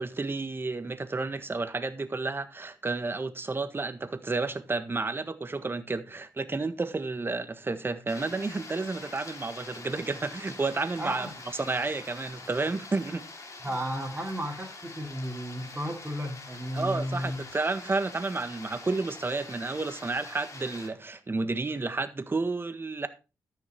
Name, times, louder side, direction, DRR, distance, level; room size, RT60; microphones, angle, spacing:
voice 1, 0.0-11.3 11.6-13.2 16.7-23.1, right 3 dB, 35° right, 1.5 m, -31 dB
sound 1, 8.1-20.9, left 3 dB, 50° left, 3.1 m, -45 dB
voice 2, 11.0-11.3 13.6-17.4, equal, 15° right, 2.9 m, -33 dB
13.5 x 5.9 x 4.4 m
cardioid pair, 65°, 7 cm